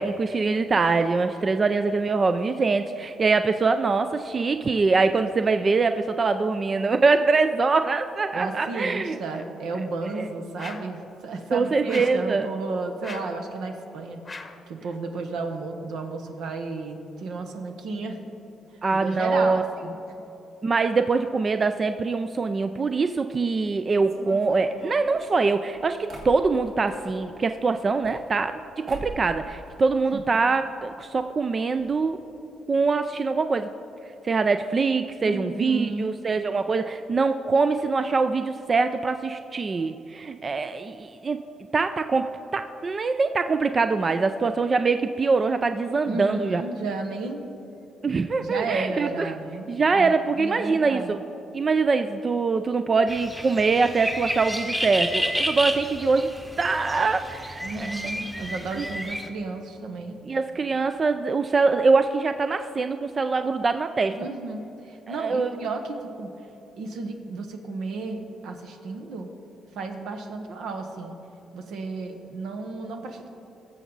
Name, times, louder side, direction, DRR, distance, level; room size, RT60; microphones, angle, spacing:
voice 1, 0.0-9.4 10.2-10.3 11.5-12.5 18.8-19.6 20.6-32.2 32.7-33.7 34.2-41.4 41.7-42.3 42.5-46.6 48.0-49.3 49.7-51.2 51.5-56.3 56.6-57.9 58.8-58.9 60.3-64.2 65.1-65.6, right 4 dB, 35° right, 9 dB, 0.4 m, -23 dB
voice 2, 8.3-14.2 14.7-18.2 18.7-20.0 30.1-30.2 35.2-36.2 46.1-47.5 48.4-51.2 57.6-60.2 64.2-66.3 66.8-69.3 69.7-71.2 71.5-73.3, right 3 dB, 80° right, 5 dB, 1.1 m, -33 dB
sound 1, 10.6-11.0 11.9-12.3 13.0-13.4 14.2-14.7, left 3 dB, 25° left, 0.8 m, -40 dB
sound 2, 24.0-27.0 27.8-28.6 28.9-29.3 29.6-30.4 30.7-30.8 31.0-31.1 31.8-31.9 32.2-32.4, right 2 dB, 65° right, 2.0 m, -42 dB
sound 3, 53.1-59.3, equal, 10° right, 1.1 m, -31 dB
18.5 x 7.2 x 4.0 m, 3.0 s
cardioid pair, 90°, 0 cm